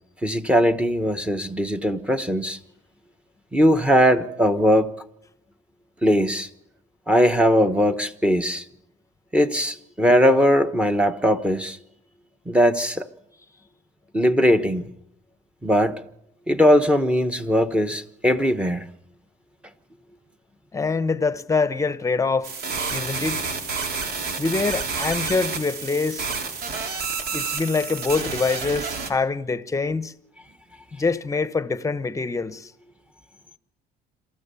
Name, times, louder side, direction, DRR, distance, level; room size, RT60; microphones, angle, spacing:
voice 1, 0.2-2.6 3.5-4.9 6.0-6.5 7.1-8.6 9.3-11.8 12.5-13.1 14.1-14.9 15.6-16.0 16.5-18.9, equal, 5° right, 1.2 m, -20 dB
voice 2, 20.7-22.5 22.9-23.4 24.4-26.3 27.3-30.1 30.9-32.7, left 4 dB, 20° left, 0.9 m, -25 dB
sound 1, 22.4-29.1, right 4 dB, 65° right, 3.0 m, -29 dB
26.5 x 14.0 x 6.9 m
cardioid pair, 110°, 17 cm